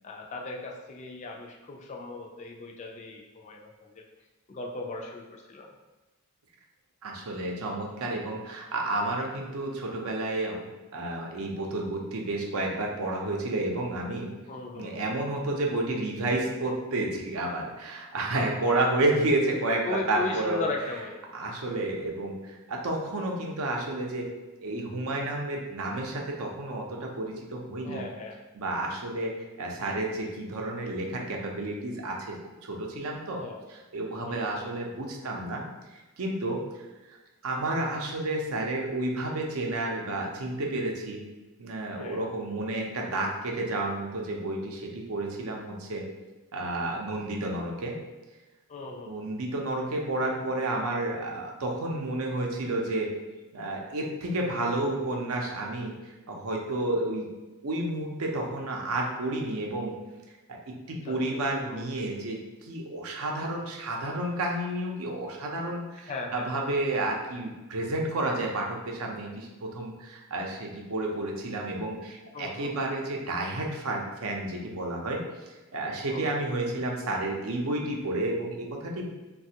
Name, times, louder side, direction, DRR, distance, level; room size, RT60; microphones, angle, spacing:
voice 1, 0.0-4.1 4.5-5.7 14.5-14.9 18.7-19.1 19.8-21.2 27.8-28.4 33.4-33.7 34.3-34.7 42.0-42.2 48.7-49.2 61.1-61.4 61.7-61.9 66.1-66.5 72.3-72.8 76.1-76.5, left 3 dB, 30° left, 0 dB, 0.3 m, -37 dB
voice 2, 7.0-10.6 10.9-14.3 14.7-20.6 21.3-24.3 24.6-28.0 28.5-29.3 29.6-32.4 32.6-33.4 33.7-35.6 36.2-36.6 37.1-37.2 37.4-41.2 41.6-46.0 46.5-47.9 49.1-53.1 53.5-55.9 56.3-57.3 57.6-59.9 60.5-75.2 75.7-79.1, right 2 dB, 75° right, 0 dB, 0.6 m, -31 dB
3.2 x 2.3 x 2.8 m, 1.1 s
head